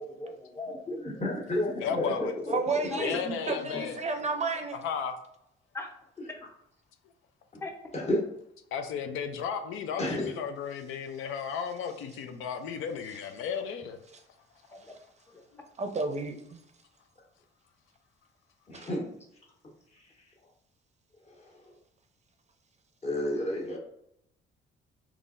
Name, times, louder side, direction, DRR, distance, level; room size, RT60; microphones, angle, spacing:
voice 1, 0.0-1.2 2.1-2.5 2.9-3.0 3.7-3.9 5.7-5.9 7.6-7.7 14.7-14.9 15.3-15.4, left 2 dB, 10° left, 0.7 m, -40 dB
voice 2, 1.0-2.6 3.0-3.1 7.9-8.2 10.0-10.2 18.7-19.1 23.0-23.8, left 1 dB, 35° left, 1.3 m, -30 dB
voice 3, 1.8-2.3 3.0-4.0 4.8-5.1 8.7-14.0, left 7 dB, 85° left, 0.5 m, -34 dB
voice 4, 2.5-4.8 13.1-13.2 14.1-14.2 14.9-15.0 15.8-16.3 18.7-18.9, right 3 dB, 35° right, 0.5 m, -32 dB
3.7 x 2.9 x 2.5 m
cardioid pair, 90°, 20 cm